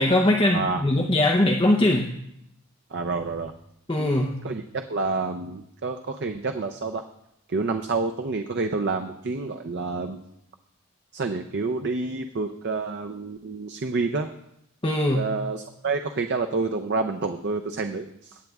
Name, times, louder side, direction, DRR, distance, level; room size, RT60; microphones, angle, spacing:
voice 1, 0.0-2.1 3.9-4.3 14.8-15.3, left 1 dB, 25° left, 0 dB, 0.6 m, -21 dB
voice 2, 0.5-0.8 2.9-3.5 4.0-7.0 7.5-10.2 11.1-14.3 15.1-18.4, right 3 dB, 50° right, 6 dB, 0.5 m, -28 dB
19.5 x 9.0 x 2.4 m, 0.78 s
head